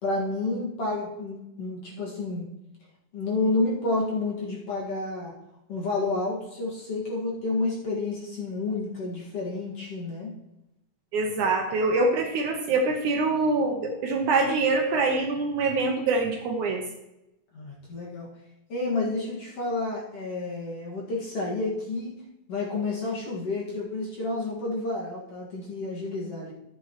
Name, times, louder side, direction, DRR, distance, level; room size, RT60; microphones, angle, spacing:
voice 1, 0.0-2.5 3.1-5.3 5.7-10.3 17.5-18.3 18.7-22.1 22.5-26.5, left 2 dB, 45° left, -4 dB, 2.4 m, -30 dB
voice 2, 11.1-16.8, right 3 dB, 70° right, 2 dB, 2.2 m, -24 dB
14.0 x 8.0 x 3.0 m, 0.88 s
omnidirectional pair, 4.1 m